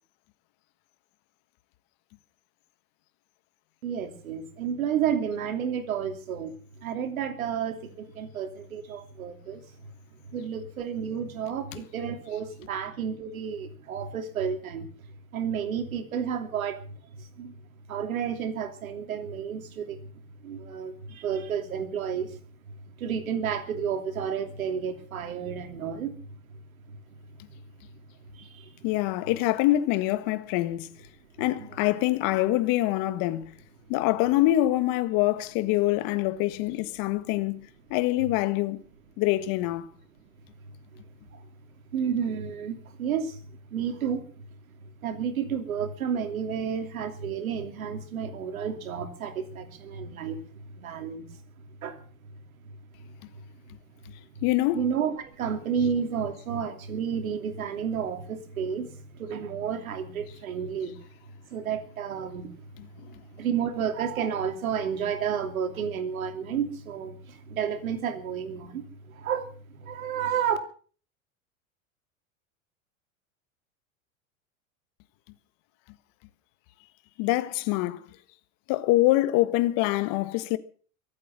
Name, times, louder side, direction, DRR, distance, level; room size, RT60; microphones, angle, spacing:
voice 1, 3.8-6.5 6.8-9.6 10.3-14.9 15.3-16.8 17.2-17.5 17.9-20.1 20.4-22.4 23.0-26.2 28.3-28.8 31.6-31.7 40.9-41.0 41.3-41.4 41.9-43.4 43.7-44.2 45.0-50.4 50.7-51.3 51.8-52.0 54.7-61.0 61.5-62.5 63.3-70.6, right 7 dB, 80° right, 2.9 m, -31 dB
voice 2, 28.8-30.9 31.4-33.5 33.9-38.8 39.2-39.9 54.4-54.9 77.2-78.0 78.7-80.6, left 16 dB, 55° left, 1.6 m, -25 dB
23.5 x 8.5 x 6.2 m
hypercardioid pair, 100°, 41 cm